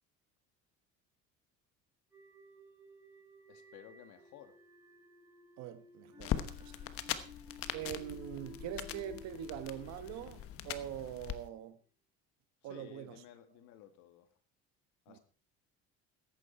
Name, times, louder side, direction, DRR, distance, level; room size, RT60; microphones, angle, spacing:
sound 1, 2.1-11.3, left 3 dB, 10° right, 3.9 m, -56 dB
voice 1, 3.5-4.6 6.8-7.3 12.6-14.3 15.1-15.2, left 10 dB, 75° left, 2.0 m, -56 dB
voice 2, 5.6-6.9 7.7-11.8 12.6-13.2 15.1-15.2, right 10 dB, 65° right, 1.4 m, -43 dB
sound 2, 6.2-11.4, left 11 dB, 50° left, 1.2 m, -41 dB
14.5 x 11.0 x 4.4 m
cardioid pair, 150°, 29 cm